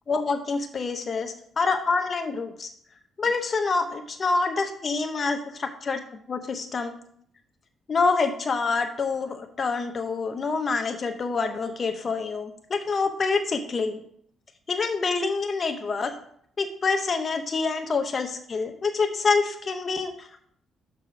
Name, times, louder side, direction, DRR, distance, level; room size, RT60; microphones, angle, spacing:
voice 1, 0.1-2.7 3.2-6.0 6.3-7.0 7.9-14.0 14.7-16.2 16.6-20.5, left 4 dB, 40° left, 6 dB, 0.8 m, -26 dB
5.9 x 4.9 x 5.9 m, 0.64 s
cardioid pair, 90°, 0 cm